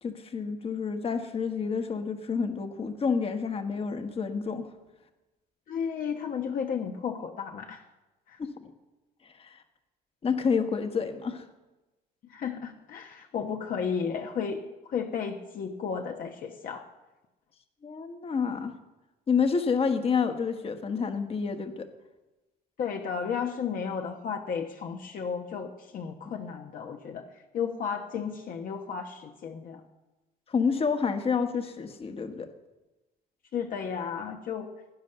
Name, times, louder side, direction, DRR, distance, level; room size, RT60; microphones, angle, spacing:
voice 1, 0.0-4.7 8.4-8.7 9.4-9.6 10.2-11.4 17.8-18.7 19.3-21.9 30.5-32.5, left 5 dB, 35° left, 7 dB, 1.5 m, -29 dB
voice 2, 5.7-7.8 8.3-8.4 12.3-16.9 22.8-27.3 27.5-29.8 33.5-34.7, left 6 dB, 55° left, 3 dB, 1.2 m, -33 dB
16.5 x 10.5 x 6.7 m, 1.1 s
cardioid pair, 110°, 17 cm